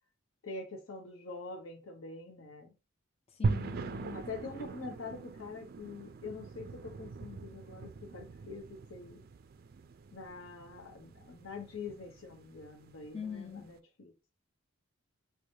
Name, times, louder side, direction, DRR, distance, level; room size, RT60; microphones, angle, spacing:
voice 1, 0.4-2.8 4.1-9.2 10.1-14.1, left 3 dB, 80° left, 0.9 m, -45 dB
voice 2, 3.3-4.3 13.1-13.7, left 6 dB, 30° left, 0.4 m, -42 dB
sound 1, 3.4-13.7, right 4 dB, 45° right, 0.3 m, -41 dB
4.7 x 2.1 x 2.7 m
head